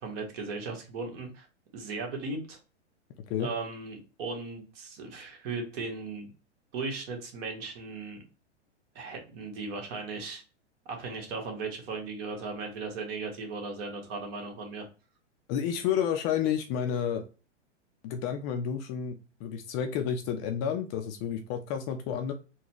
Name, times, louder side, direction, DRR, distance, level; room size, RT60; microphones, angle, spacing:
voice 1, 0.0-1.5 1.7-2.6 3.4-6.3 6.7-8.2 8.9-10.4 10.9-14.9, right 3 dB, 55° right, 2 dB, 1.5 m, -37 dB
voice 2, 15.5-17.2 18.0-22.3, left 8 dB, 30° left, 6 dB, 0.4 m, -30 dB
4.0 x 2.2 x 2.9 m, 0.33 s
hypercardioid pair, 115°, 36 cm